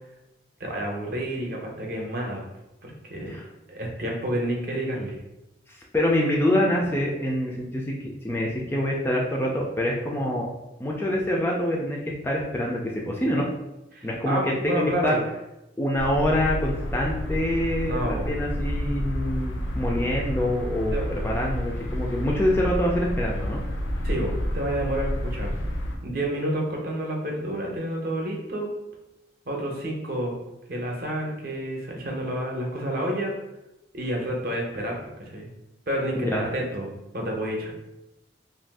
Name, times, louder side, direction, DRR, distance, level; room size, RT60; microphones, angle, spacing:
voice 1, 0.6-2.4 2.8-3.4 3.7-5.2 13.9-15.2 17.9-18.3 20.9-21.0 24.0-25.5 26.0-28.7 29.5-30.4 30.7-33.3 33.9-35.5 35.9-37.7, right 1 dB, 50° right, 0 dB, 0.6 m, -29 dB
voice 2, 5.7-10.5 10.8-13.5 14.0-15.2 15.8-23.6 36.2-36.4, left 1 dB, 10° left, -2 dB, 0.3 m, -26 dB
sound 1, 16.0-26.0, equal, 85° left, 0.5 m, -30 dB
2.5 x 2.3 x 3.4 m, 0.95 s
head